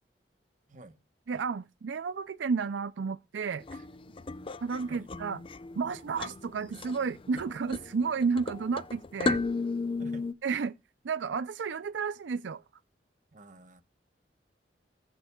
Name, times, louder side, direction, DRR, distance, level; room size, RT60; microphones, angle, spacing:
voice 1, 1.3-3.6 4.6-5.4 5.8-9.4 10.4-10.8 11.0-12.6, right 5 dB, 85° right, 0.4 m, -32 dB
sound 1, 3.6-10.3, left 3 dB, 30° left, 0.5 m, -35 dB
voice 2, 3.7-4.2 4.9-5.1 10.0-10.3 13.3-13.8, right 2 dB, 45° right, 1.1 m, -50 dB
20.0 x 7.8 x 2.3 m
head